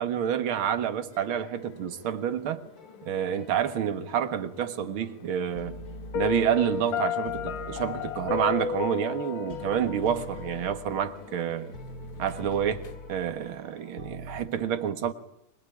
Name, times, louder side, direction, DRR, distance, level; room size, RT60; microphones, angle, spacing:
voice 1, 0.0-2.6 3.1-5.8 6.1-11.7 12.2-12.8 13.1-15.1, right 9 dB, 50° right, 2.0 m, -28 dB
sound 1, 1.1-2.3 2.8-4.7 5.0-7.0 7.2-14.5, left 1 dB, 30° left, 2.7 m, -45 dB
sound 2, 1.5-13.0, left 7 dB, 90° left, 3.4 m, -51 dB
Piano, 6.1-11.1, left 7 dB, 65° left, 2.8 m, -33 dB
24.0 x 22.0 x 10.0 m
omnidirectional pair, 3.4 m